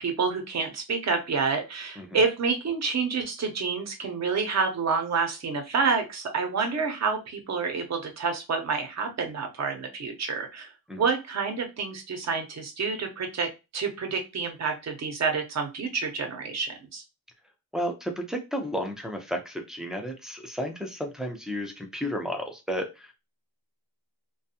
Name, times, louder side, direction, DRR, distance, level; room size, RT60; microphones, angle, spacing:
voice 1, 0.0-10.7 11.0-13.5 13.7-17.0, right 5 dB, 45° right, 4 dB, 0.7 m, -28 dB
voice 2, 17.7-23.2, equal, ahead, 2 dB, 0.5 m, -32 dB
2.5 x 2.3 x 2.7 m, 0.26 s
cardioid pair, 120°, 39 cm